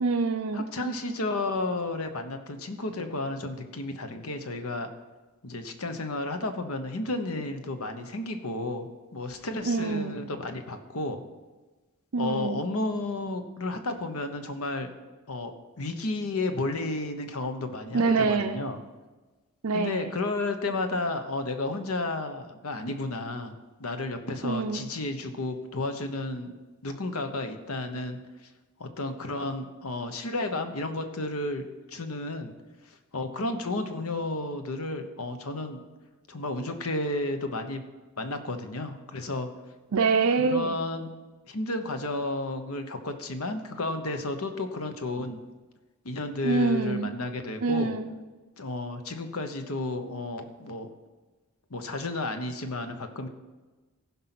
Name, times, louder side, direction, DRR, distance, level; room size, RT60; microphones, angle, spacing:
voice 1, 0.0-0.7 9.6-10.2 12.1-12.6 17.9-18.6 19.6-20.2 24.4-24.9 39.9-40.7 46.4-47.1 47.6-48.1, right 4 dB, 70° right, 5 dB, 0.6 m, -26 dB
voice 2, 0.5-4.9 5.4-11.2 12.2-14.9 15.3-18.8 19.7-23.5 23.8-26.5 26.8-28.2 28.8-31.7 31.9-32.5 32.9-35.8 36.3-37.8 38.2-39.5 40.4-41.1 41.5-45.4 46.0-47.9 48.6-50.9 51.7-53.3, left 2 dB, 70° left, 7 dB, 1.1 m, -32 dB
15.0 x 5.6 x 6.0 m, 1.2 s
head